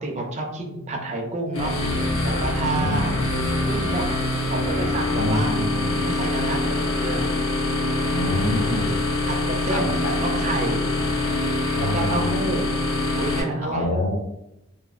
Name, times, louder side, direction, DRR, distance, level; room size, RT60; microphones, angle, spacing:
voice 1, 0.0-2.0 2.2-3.2 3.7-4.0 4.5-5.6 6.0-7.3 9.2-10.9 11.8-12.7 13.1-14.0, right 2 dB, 30° right, 1 dB, 0.4 m, -29 dB
sound 1, 1.5-13.4, left 2 dB, 70° left, 1.0 m, -24 dB
voice 2, 2.6-3.2 5.2-6.0 8.1-8.9 9.7-10.1 11.0-11.1 11.8-12.4 13.6-14.2, left 1 dB, 85° left, 2 dB, 0.5 m, -27 dB
3.0 x 2.2 x 2.4 m, 0.86 s
head